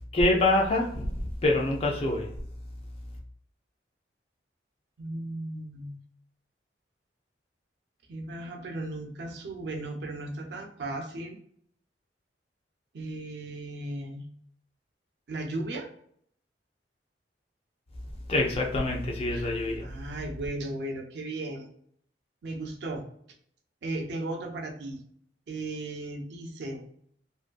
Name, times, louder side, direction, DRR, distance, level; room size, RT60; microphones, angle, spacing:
voice 1, 0.1-1.1 1.4-2.3 18.3-19.8, left 2 dB, 35° left, 0 dB, 0.4 m, -25 dB
voice 2, 5.0-6.0 8.1-11.4 12.9-14.2 15.3-15.9 19.3-19.5 19.8-21.7 22.4-23.0 23.8-25.0 25.5-26.8, right 2 dB, 65° right, 3 dB, 0.4 m, -36 dB
2.5 x 2.4 x 2.2 m, 0.65 s
head